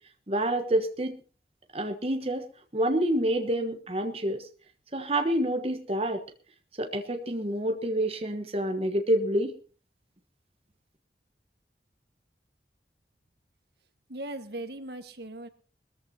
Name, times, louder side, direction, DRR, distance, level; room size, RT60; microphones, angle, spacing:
voice 1, 0.3-1.2 1.7-2.5 2.7-4.5 4.9-6.2 6.8-9.5, right 1 dB, 35° right, 5 dB, 1.2 m, -27 dB
voice 2, 14.1-15.5, right 1 dB, 65° right, 8 dB, 1.6 m, -38 dB
21.5 x 14.5 x 2.9 m, 0.39 s
head